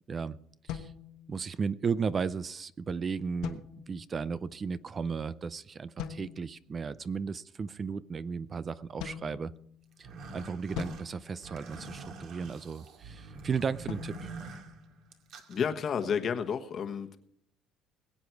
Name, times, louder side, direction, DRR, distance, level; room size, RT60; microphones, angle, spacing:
sound 1, 0.7-1.8 3.4-4.2 6.0-6.6 9.0-10.1 10.7-12.2 13.9-15.4, left 9 dB, 75° left, 1.2 m, -43 dB
voice 1, 1.3-9.5 10.0-10.1 10.3-14.3, right 5 dB, 30° right, 16 dB, 0.5 m, -35 dB
sound 2, 9.9-15.6, right 4 dB, 60° right, 2.3 m, -46 dB
voice 2, 15.5-17.2, left 7 dB, 45° left, 7 dB, 1.3 m, -31 dB
21.5 x 8.5 x 4.7 m, 0.68 s
cardioid pair, 125°, 0 cm